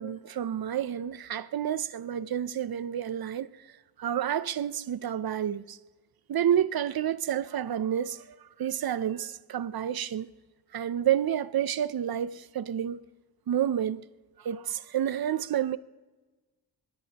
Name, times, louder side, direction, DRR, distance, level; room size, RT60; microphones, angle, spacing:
voice 1, 0.0-3.7 4.0-5.8 6.3-10.3 10.7-13.0 13.5-14.0 14.4-15.8, right 10 dB, 55° right, 0.6 m, -29 dB
23.5 x 21.0 x 2.9 m
wide cardioid pair, 95°, 44 cm